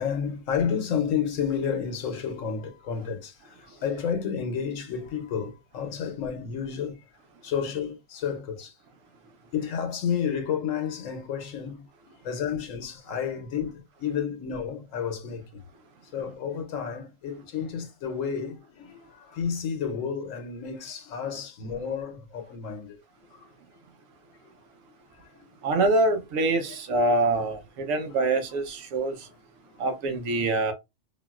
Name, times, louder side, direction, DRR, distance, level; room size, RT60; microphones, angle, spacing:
voice 1, 0.0-3.4 3.7-7.0 7.4-8.7 9.5-15.5 16.1-23.0 23.3-23.5 25.3-25.5 27.9-28.2 28.5-28.6 29.6-29.7, left 7 dB, 85° left, 1.2 m, -31 dB
voice 2, 25.6-29.1 29.8-30.7, right 2 dB, 85° right, 1.1 m, -25 dB
3.8 x 2.3 x 2.3 m
omnidirectional pair, 1.3 m